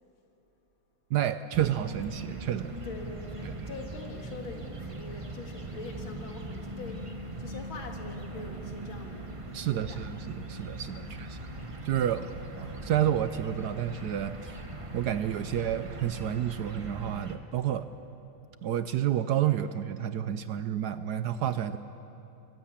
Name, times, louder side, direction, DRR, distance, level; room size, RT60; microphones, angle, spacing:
voice 1, 1.1-2.8 3.4-3.5 9.5-11.4 11.8-12.3 12.6-14.6 14.9-17.9 18.6-21.8, right 10 dB, 70° right, 12 dB, 1.0 m, -30 dB
sound 1, 1.5-17.4, right 2 dB, 20° right, 0.9 m, -40 dB
voice 2, 2.8-9.4 9.7-10.0 11.0-11.4, left 3 dB, 85° left, 2 dB, 2.9 m, -44 dB
23.5 x 15.5 x 8.8 m, 3.0 s
omnidirectional pair, 2.1 m